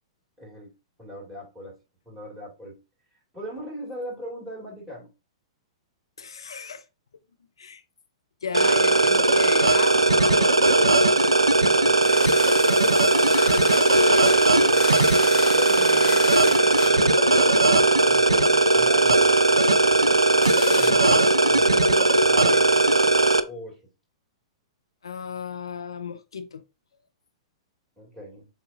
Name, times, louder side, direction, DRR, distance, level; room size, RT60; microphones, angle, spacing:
voice 1, 0.4-0.7 1.0-1.8 2.1-2.8 3.3-5.1 11.7-12.5 14.6-14.9 15.5-19.3 20.7-22.9 23.5-23.8 28.0-28.5, equal, 10° right, 2.5 m, -39 dB
voice 2, 6.2-6.8 7.6-7.8 8.4-10.8 21.6-21.8 25.0-26.6, left 6 dB, 70° left, 0.4 m, -34 dB
sound 1, 8.5-23.4, right 2 dB, 85° right, 0.4 m, -18 dB
sound 2, 8.9-20.9, left 7 dB, 45° left, 1.0 m, -38 dB
7.2 x 2.9 x 2.5 m
figure-of-eight pair, 105°, 3 cm